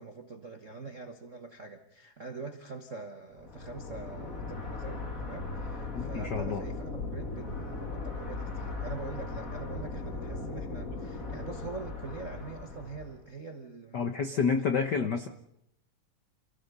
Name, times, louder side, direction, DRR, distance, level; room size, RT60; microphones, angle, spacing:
voice 1, 0.0-14.5 14.9-15.3, right 3 dB, 55° right, 5 dB, 0.8 m, -44 dB
sound 1, 3.4-13.2, left 3 dB, 25° left, 2.6 m, -38 dB
voice 2, 5.9-6.6 13.9-15.3, left 5 dB, 70° left, 7 dB, 0.9 m, -29 dB
29.0 x 16.0 x 6.9 m, 0.78 s
omnidirectional pair, 3.7 m